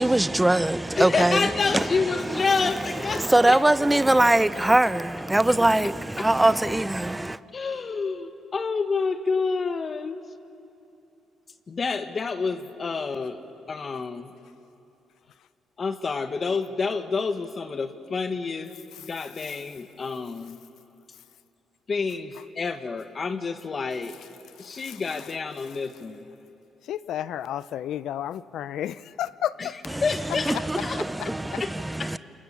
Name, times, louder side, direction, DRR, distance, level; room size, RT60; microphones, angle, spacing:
voice 1, 0.0-7.4 29.8-32.2, right 1 dB, 10° right, 0.7 m, -23 dB
voice 2, 1.0-3.6 6.2-6.3 7.5-10.2 11.7-13.4 13.7-14.3 15.8-20.6 21.9-24.2 24.6-26.3 29.6-31.3 31.6-32.2, left 4 dB, 40° left, 1.6 m, -28 dB
voice 3, 26.9-29.8 31.5-31.6, left 11 dB, 75° left, 0.6 m, -31 dB
29.0 x 27.5 x 7.2 m
cardioid pair, 90°, 0 cm